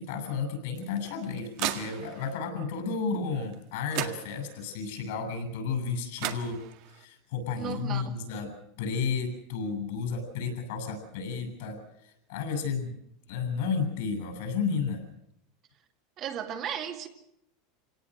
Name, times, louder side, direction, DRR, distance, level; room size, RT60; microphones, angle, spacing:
voice 1, 0.0-6.6 6.9-13.0 13.3-15.1, left 5 dB, 70° left, 5 dB, 7.7 m, -32 dB
sound 1, 0.8-2.4 3.5-3.6 3.9-4.7 5.9-6.0 6.2-7.0, right 13 dB, 55° right, 1.8 m, -36 dB
voice 2, 7.6-8.2 16.2-17.1, right 9 dB, 35° right, 4 dB, 2.3 m, -35 dB
26.0 x 18.5 x 6.4 m, 0.81 s
supercardioid pair, 150°, 0 cm